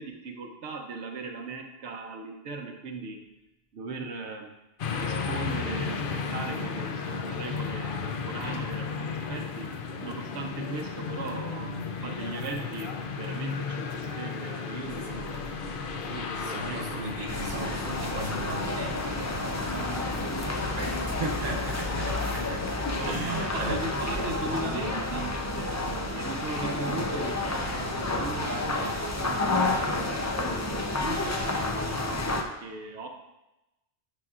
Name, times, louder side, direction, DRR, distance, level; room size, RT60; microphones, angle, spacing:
voice 1, 0.0-3.2 3.7-4.5 4.9-9.7 10.0-11.7 12.0-15.5 15.9-17.0 17.3-17.5 22.9-32.0 32.3-33.1, right 3 dB, 85° right, 3 dB, 1.0 m, -38 dB
sound 1, 4.8-23.2, left 5 dB, 60° left, 0.7 m, -35 dB
sound 2, 14.8-27.9, equal, 85° left, 2.3 m, -46 dB
voice 2, 16.4-22.7 23.0-23.8, right 3 dB, 50° right, 1 dB, 1.1 m, -37 dB
sound 3, 17.3-32.4, left 2 dB, 30° left, 0.3 m, -30 dB
9.1 x 6.0 x 2.4 m, 0.97 s
omnidirectional pair, 1.1 m